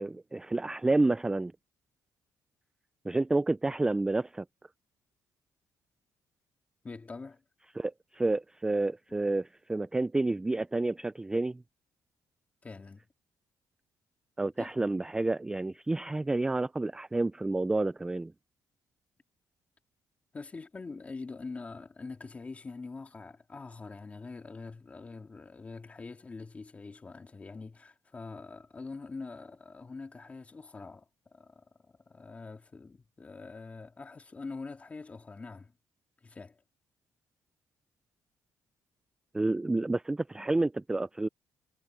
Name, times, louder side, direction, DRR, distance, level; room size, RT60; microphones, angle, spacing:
voice 1, 0.0-1.5 3.0-4.4 7.8-11.6 14.4-18.3 39.3-41.3, right 2 dB, 10° right, 0.3 m, -29 dB
voice 2, 6.8-7.4 12.6-13.0 14.6-14.8 20.3-31.1 31.3-35.7 36.2-36.6, left 4 dB, 20° left, 2.6 m, -44 dB
cardioid pair, 140°, 6 cm